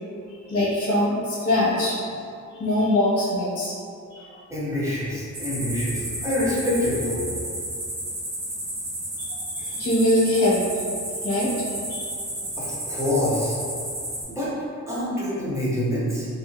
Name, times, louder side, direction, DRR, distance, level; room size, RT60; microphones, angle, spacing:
voice 1, 0.5-2.0 2.6-3.7 4.1-4.4 9.2-10.6 11.2-11.5 11.9-12.1, left 1 dB, 50° left, -8 dB, 0.8 m, -23 dB
voice 2, 4.5-7.2 12.6-13.6 14.3-14.5 14.9-16.3, left 1 dB, 10° right, -9 dB, 0.7 m, -26 dB
sound 1, 5.3-14.2, right 1 dB, 65° right, 1.1 m, -32 dB
2.9 x 2.5 x 2.6 m, 2.4 s
wide cardioid pair, 175°, 31 cm